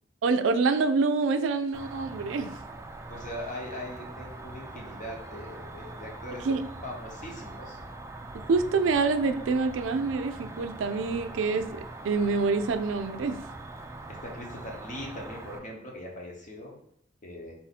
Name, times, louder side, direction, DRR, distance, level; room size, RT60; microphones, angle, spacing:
voice 1, 0.2-2.5 6.5-6.6 8.5-13.4, right 4 dB, 85° right, 10 dB, 0.4 m, -26 dB
Cricket, 1.7-15.6, right 2 dB, 15° right, 0.3 m, -42 dB
voice 2, 3.1-6.5 6.8-7.8 14.2-16.8 17.2-17.5, left 1 dB, 45° left, -1 dB, 1.0 m, -40 dB
4.1 x 2.7 x 4.1 m, 0.72 s
head